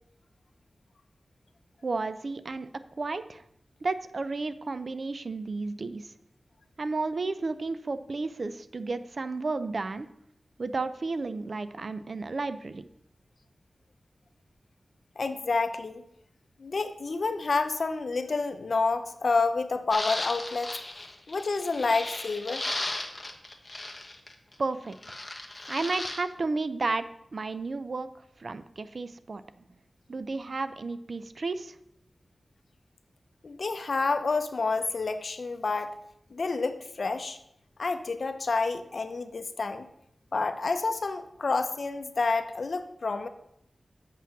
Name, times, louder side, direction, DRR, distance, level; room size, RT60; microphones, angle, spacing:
voice 1, 1.8-2.7 3.0-3.4 3.8-6.1 6.8-10.1 10.6-12.9 24.6-25.2 25.7-27.0 27.3-28.1 28.4-29.4 30.1-31.8, right 3 dB, 55° right, 12 dB, 0.5 m, -32 dB
voice 2, 15.2-16.0 16.6-20.7 21.3-22.7 33.4-35.9 36.3-37.4 37.8-39.9 40.3-43.3, left 3 dB, 60° left, 9 dB, 0.7 m, -29 dB
sound 1, 19.9-24.5 24.9-26.2, left 2 dB, 25° left, 1.2 m, -36 dB
7.5 x 5.8 x 5.9 m, 0.78 s
wide cardioid pair, 85°, 0 cm